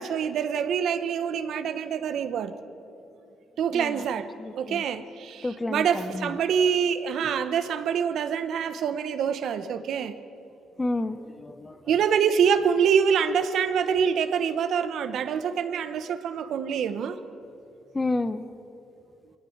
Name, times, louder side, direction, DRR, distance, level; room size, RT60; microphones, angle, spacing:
voice 1, 0.0-2.5 3.6-10.1 11.9-17.2, right 7 dB, 70° right, 11 dB, 1.2 m, -25 dB
voice 2, 4.4-4.8 5.4-6.3 10.8-11.8 17.9-18.4, left 2 dB, 20° left, 12 dB, 1.0 m, -30 dB
22.0 x 18.0 x 8.0 m, 2.8 s
cardioid pair, 90°, 0 cm